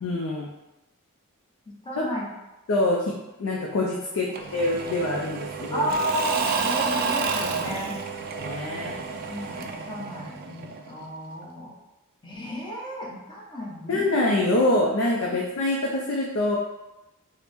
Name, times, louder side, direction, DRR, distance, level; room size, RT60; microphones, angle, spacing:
voice 1, 0.0-0.5 2.7-3.1 3.4-5.9 8.4-8.9 13.9-16.6, left 2 dB, 60° left, -2 dB, 0.5 m, -25 dB
voice 2, 1.7-2.3 5.7-8.0 9.3-11.7 12.2-14.1, left 1 dB, 20° left, -3 dB, 0.8 m, -33 dB
Engine / Mechanisms / Drill, 4.3-11.0, right 5 dB, 40° right, 0.3 m, -30 dB
4.5 x 2.0 x 3.4 m, 0.99 s
head